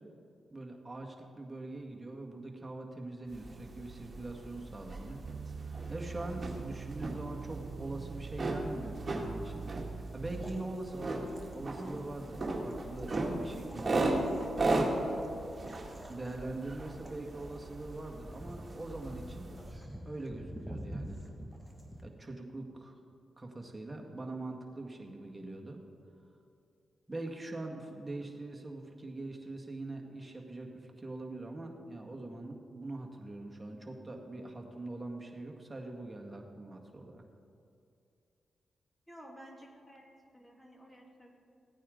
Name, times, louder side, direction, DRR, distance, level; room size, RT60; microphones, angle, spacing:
voice 1, 0.5-5.2 5.6-9.7 10.1-14.1 16.1-19.5 20.1-21.2 22.0-23.0 23.4-25.8 27.1-37.2, right 2 dB, 20° right, 0 dB, 2.0 m, -43 dB
sound 1, 3.3-19.8, right 2 dB, 35° right, 2.1 m, -37 dB
sound 2, 5.2-10.6, right 5 dB, 65° right, 0.3 m, -43 dB
sound 3, 7.9-22.0, equal, 5° right, 1.9 m, -50 dB
voice 2, 39.1-40.0 40.3-41.3, equal, 15° left, 1 dB, 2.4 m, -53 dB
16.0 x 9.2 x 3.9 m, 2.6 s
supercardioid pair, 50°, 0 cm